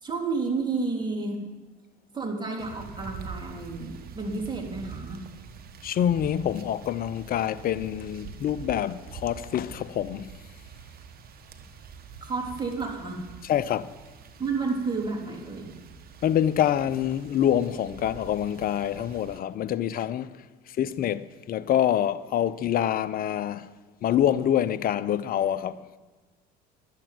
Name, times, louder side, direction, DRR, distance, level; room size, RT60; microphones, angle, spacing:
voice 1, 0.0-1.4 2.1-5.2 12.2-13.2 14.4-15.7, right 4 dB, 20° right, 3.4 m, -31 dB
sound 1, 2.6-19.4, right 6 dB, 50° right, 1.4 m, -45 dB
voice 2, 5.8-10.3 13.4-13.9 16.2-20.3 20.8-23.7 24.0-25.8, left 10 dB, 45° left, 0.7 m, -26 dB
11.0 x 7.6 x 9.2 m
hypercardioid pair, 75°, 20 cm